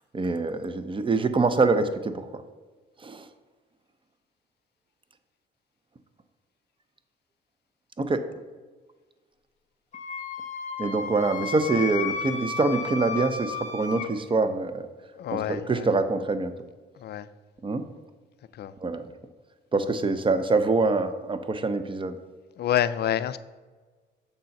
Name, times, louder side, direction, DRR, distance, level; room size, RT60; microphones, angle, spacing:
voice 1, 0.1-2.4 3.0-3.3 8.0-8.3 10.8-14.8 15.3-16.5 17.6-17.9 18.8-19.0 19.7-22.2, right 3 dB, 25° right, 11 dB, 0.5 m, -25 dB
Wind instrument woodwind instrument, 9.9-14.1, left 6 dB, 35° left, 1.1 m, -33 dB
voice 2, 15.1-15.9 17.0-17.3 18.6-18.7 22.6-23.4, left 11 dB, 55° left, 14 dB, 0.4 m, -27 dB
6.8 x 3.9 x 5.8 m, 1.4 s
cardioid pair, 90°, 20 cm